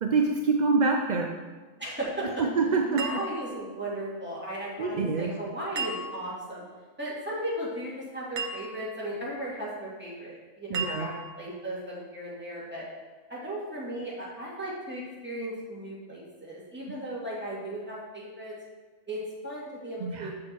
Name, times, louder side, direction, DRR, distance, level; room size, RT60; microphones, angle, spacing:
voice 1, 0.0-1.3 2.4-3.0 4.8-5.3 10.7-11.1 20.0-20.3, right 4 dB, 60° right, 3 dB, 0.4 m, -25 dB
voice 2, 1.8-2.2 2.9-6.6 7.0-12.9 13.3-18.5 19.1-20.3, right 1 dB, 10° right, -7 dB, 2.4 m, -36 dB
sound 1, 3.0-3.9 5.8-6.5 8.4-9.0 10.7-11.5, right 3 dB, 90° right, 1.3 m, -36 dB
7.4 x 6.1 x 4.6 m, 1.3 s
omnidirectional pair, 1.4 m